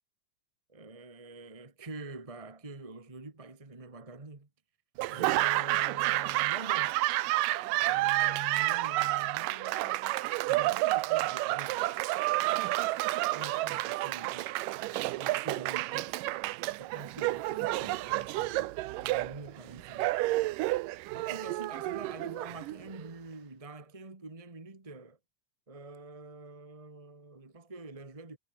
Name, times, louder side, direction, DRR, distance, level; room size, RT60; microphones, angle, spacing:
voice 1, 0.7-4.5 5.1-7.0 7.8-11.9 13.3-14.5 15.1-16.2 16.8-20.1 21.1-25.2 25.7-28.4, right 3 dB, 20° right, 0.8 m, -46 dB
Laughter / Applause, 5.0-23.1, right 18 dB, 90° right, 2.3 m, -30 dB
omnidirectional pair, 3.8 m